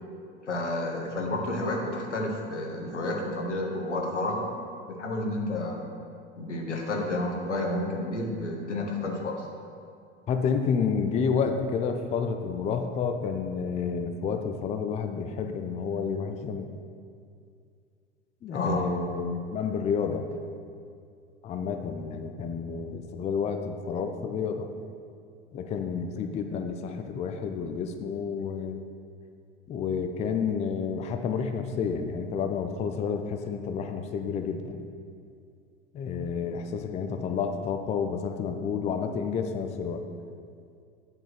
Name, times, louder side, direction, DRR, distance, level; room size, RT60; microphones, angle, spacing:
voice 1, 0.4-4.5 4.9-5.8 6.4-9.4 18.5-18.8, left 1 dB, 90° left, 0 dB, 1.1 m, -30 dB
voice 2, 10.3-16.7 18.4-20.3 21.4-24.7 25.5-28.8 29.7-34.8 35.9-40.0, left 6 dB, 20° left, 6 dB, 0.4 m, -30 dB
8.2 x 3.6 x 5.9 m, 2.3 s
figure-of-eight pair, 85°, 35 cm